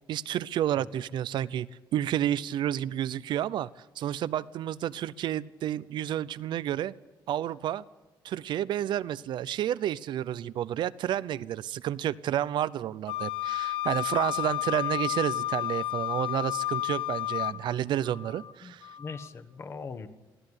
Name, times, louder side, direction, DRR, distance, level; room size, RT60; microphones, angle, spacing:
voice 1, 0.1-3.7 4.0-6.9 7.3-7.8 8.2-18.9, right 11 dB, 65° right, 18 dB, 0.7 m, -30 dB
Wind instrument woodwind instrument, 13.1-17.6, left 16 dB, 80° left, 1.1 m, -31 dB
sound 1, 17.3-17.8 18.0-18.5 18.8-19.3, left 7 dB, 60° left, 2.5 m, -49 dB
voice 2, 18.6-20.1, left 5 dB, 30° left, 10 dB, 1.5 m, -41 dB
23.5 x 16.5 x 9.9 m, 1.1 s
cardioid pair, 165°, 9 cm